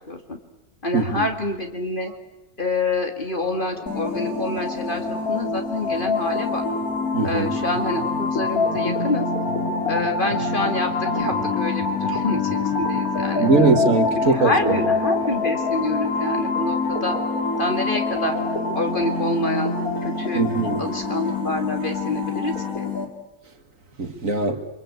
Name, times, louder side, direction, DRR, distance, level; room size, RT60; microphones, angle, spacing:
voice 1, 0.1-0.4 0.8-2.1 2.6-6.6 7.2-9.3 9.9-13.8 14.1-17.2 17.6-18.4 18.7-19.7 20.0-20.5 20.8-22.9, left 2 dB, 35° left, 2.6 m, -27 dB
voice 2, 0.9-1.2 7.1-7.5 13.4-14.5 20.4-20.8 24.0-24.6, right 3 dB, 65° right, 2.4 m, -20 dB
sound 1, 3.4-22.7, right 1 dB, 55° left, 7.1 m, -42 dB
sound 2, 3.9-23.0, left 3 dB, 75° left, 3.4 m, -25 dB
28.5 x 24.0 x 8.2 m
omnidirectional pair, 1.5 m